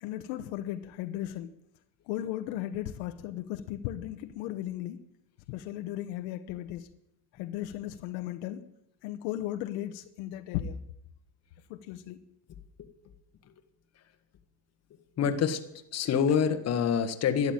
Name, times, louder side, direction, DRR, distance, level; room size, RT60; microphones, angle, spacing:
voice 1, 0.0-1.5 2.1-5.0 5.5-6.9 7.4-8.7 9.0-10.8 11.7-12.2, left 13 dB, 70° left, 1.2 m, -36 dB
voice 2, 15.2-15.6 15.9-17.5, left 7 dB, 35° left, 1.5 m, -26 dB
12.5 x 11.5 x 8.9 m
cardioid pair, 140°, 47 cm